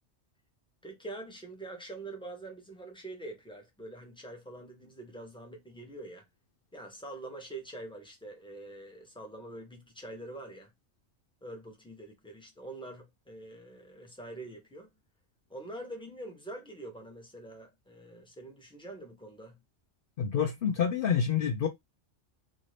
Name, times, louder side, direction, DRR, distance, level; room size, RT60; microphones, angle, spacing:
voice 1, 0.8-6.2 6.7-10.7 11.4-14.9 15.5-19.6, right 2 dB, 5° left, 0.7 m, -45 dB
voice 2, 20.2-21.7, left 7 dB, 60° left, 0.6 m, -27 dB
2.7 x 2.5 x 3.1 m
omnidirectional pair, 1.2 m